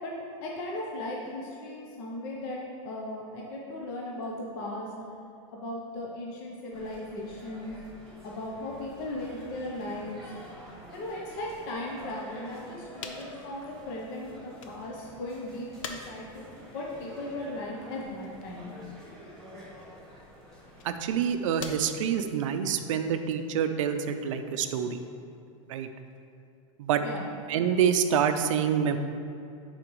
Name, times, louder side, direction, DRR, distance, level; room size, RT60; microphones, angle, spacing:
voice 1, 0.0-2.6 2.8-4.9 5.5-7.8 8.2-10.2 10.9-16.5 16.7-18.7 27.0-27.4, left 1 dB, 35° left, -2 dB, 0.7 m, -37 dB
sound 1, 6.7-21.3, equal, ahead, 1.6 m, -48 dB
sound 2, 13.0-14.9 15.3-26.4, left 5 dB, 70° left, 0.7 m, -48 dB
voice 2, 20.8-25.0 25.7-25.9 26.8-27.0 27.5-29.0, right 8 dB, 70° right, 8 dB, 0.5 m, -27 dB
11.0 x 4.2 x 3.1 m, 2.5 s
supercardioid pair, 170°, 17 cm